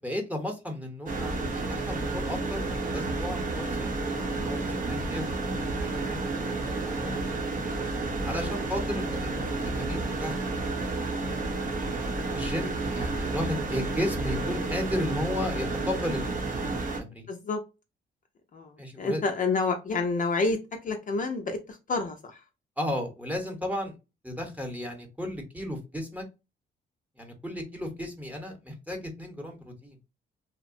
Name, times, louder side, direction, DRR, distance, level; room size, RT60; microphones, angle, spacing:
voice 1, 0.0-7.5 8.2-10.4 12.3-16.6 17.0-17.3 18.8-19.2 22.8-24.0 24.2-26.2 27.2-30.0, left 1 dB, 5° right, 3 dB, 0.9 m, -35 dB
sound 1, 1.1-17.0, right 3 dB, 45° right, 0.8 m, -31 dB
voice 2, 17.3-17.6 18.5-22.4, left 3 dB, 40° left, 4 dB, 0.5 m, -29 dB
2.8 x 2.1 x 2.5 m, 0.27 s
cardioid pair, 90°, 20 cm